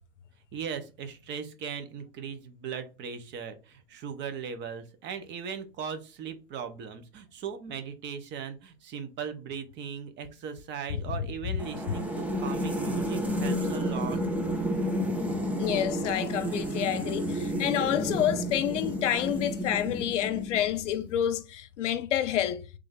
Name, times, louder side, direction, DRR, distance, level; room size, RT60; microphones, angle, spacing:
voice 1, 0.5-14.2, right 7 dB, 30° right, 0.8 m, -38 dB
voice 2, 10.9-11.3 15.6-22.6, left 10 dB, 80° left, 0.7 m, -29 dB
sound 1, 11.6-20.9, equal, 5° right, 0.5 m, -31 dB
3.3 x 3.3 x 3.7 m
hypercardioid pair, 125°, 36 cm